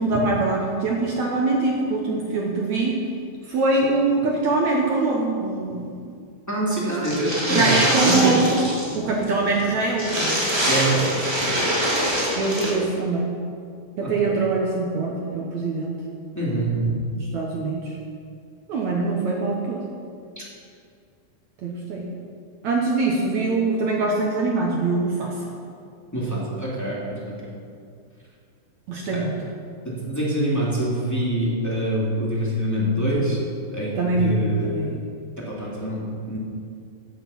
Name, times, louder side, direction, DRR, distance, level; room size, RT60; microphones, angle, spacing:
voice 1, 0.0-3.0 3.5-6.0 6.8-7.0 7.5-8.7 8.9-10.4 11.0-11.2 12.4-13.3 14.0-16.0 17.1-18.0 18.7-19.8 21.6-22.1 22.6-25.3 28.9-29.3 33.9-34.3 34.6-35.0, right 3 dB, 70° right, -1 dB, 1.7 m, -23 dB
voice 2, 6.5-7.6 7.9-8.4 10.6-11.0 14.0-14.3 16.3-16.9 20.3-20.4 26.1-27.5 29.1-29.2 29.8-33.4 33.7-34.9 35.4-36.4, right 1 dB, 5° left, -7 dB, 1.6 m, -25 dB
sound 1, 7.0-9.0 9.2-9.3 9.6-9.7 9.9-12.7, equal, 10° right, 1.4 m, -24 dB
15.0 x 8.3 x 5.8 m, 2.3 s
omnidirectional pair, 4.8 m